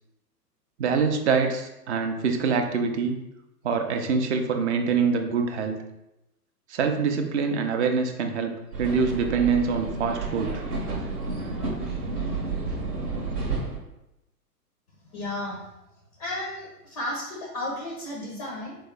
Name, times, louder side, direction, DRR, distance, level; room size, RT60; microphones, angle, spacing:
voice 1, 0.8-3.2 3.6-5.8 6.7-10.6, right 5 dB, 45° right, 6 dB, 0.5 m, -25 dB
sound 1, 8.7-13.8, right 3 dB, 75° right, 1.0 m, -31 dB
voice 2, 15.1-15.6 16.2-18.8, left 1 dB, 25° left, -2 dB, 0.4 m, -33 dB
3.5 x 2.0 x 3.3 m, 0.91 s
hypercardioid pair, 120°, 48 cm